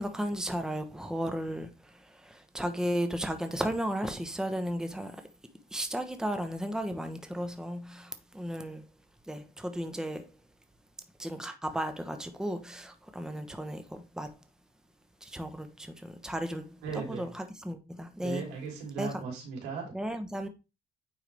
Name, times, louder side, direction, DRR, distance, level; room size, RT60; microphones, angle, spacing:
voice 1, 0.0-1.7 2.2-5.2 5.7-8.8 9.3-10.3 11.2-14.3 15.2-18.5 19.0-19.1 19.9-20.5, equal, 5° right, 1.0 m, -34 dB
voice 2, 16.8-17.3 18.2-19.8, right 6 dB, 90° right, 3.6 m, -37 dB
9.2 x 4.6 x 3.4 m
cardioid pair, 110°, 17 cm